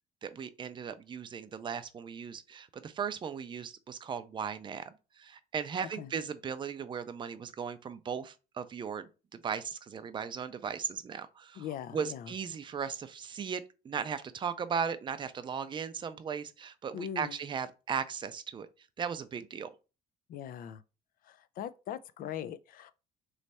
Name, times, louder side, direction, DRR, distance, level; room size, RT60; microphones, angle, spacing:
voice 1, 0.2-9.1 9.3-11.6 11.9-18.7 19.0-19.7, right 7 dB, 30° right, 0.4 m, -37 dB
voice 2, 5.8-6.1 11.6-12.3 16.9-17.4 20.3-20.8 21.2-22.9, left 9 dB, 55° left, 0.4 m, -40 dB
3.2 x 3.1 x 4.1 m
cardioid pair, 110°, 17 cm